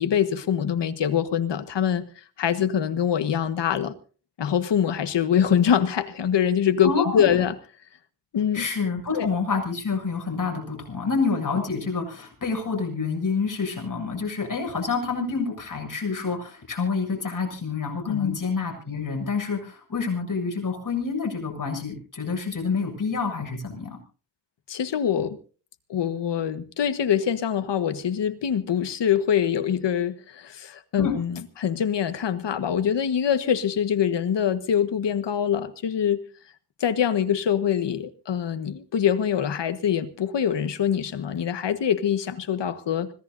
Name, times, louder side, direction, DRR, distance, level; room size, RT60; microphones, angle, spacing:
voice 1, 0.0-2.1 2.4-3.9 4.4-7.5 8.3-8.7 9.1-9.3 18.1-18.4 24.7-25.4 25.9-36.2 36.8-43.1, left 8 dB, 85° left, 1.5 m, -24 dB
voice 2, 6.8-7.4 8.5-24.0 31.0-31.2, left 4 dB, 50° left, 7.5 m, -28 dB
25.5 x 17.0 x 2.7 m
wide cardioid pair, 90°, 41 cm